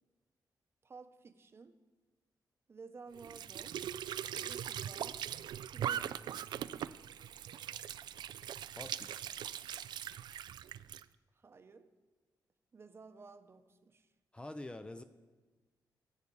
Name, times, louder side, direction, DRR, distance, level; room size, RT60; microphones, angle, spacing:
voice 1, 0.8-1.8 2.7-3.9 4.4-5.3 5.7-6.5 11.3-11.9 12.7-14.1, right 4 dB, 35° right, 9 dB, 0.8 m, -54 dB
Squeak / Sink (filling or washing) / Trickle dribble, 3.1-11.0, right 10 dB, 80° right, 0.3 m, -41 dB
voice 2, 8.7-9.3 14.3-15.0, left 1 dB, 15° left, 9 dB, 0.5 m, -46 dB
18.0 x 8.3 x 5.4 m, 1.3 s
wide cardioid pair, 150°, 7 cm